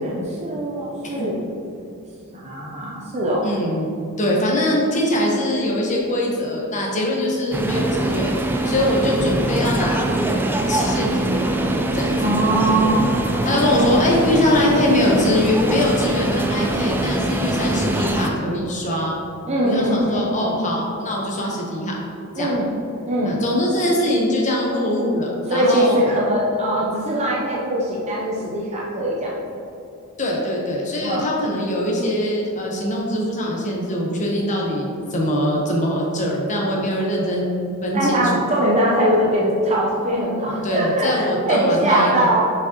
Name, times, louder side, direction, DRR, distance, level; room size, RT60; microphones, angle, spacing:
voice 1, 0.0-1.4 2.3-3.5 12.2-13.1 13.3-13.5 19.5-20.5 22.4-22.7 23.1-23.4 25.5-29.3 31.0-31.3 37.9-42.5, right 1 dB, 30° right, -4 dB, 0.7 m, -21 dB
voice 2, 3.4-3.9 4.2-8.3 8.6-10.1 10.7-12.2 13.4-19.1 19.6-22.0 22.4-22.5 23.2-26.0 30.2-38.3 40.6-42.3, left 1 dB, 35° left, -2 dB, 1.1 m, -22 dB
sound 1, 7.5-18.3, right 1 dB, 10° right, 0.4 m, -22 dB
6.4 x 5.1 x 2.9 m, 2.7 s
head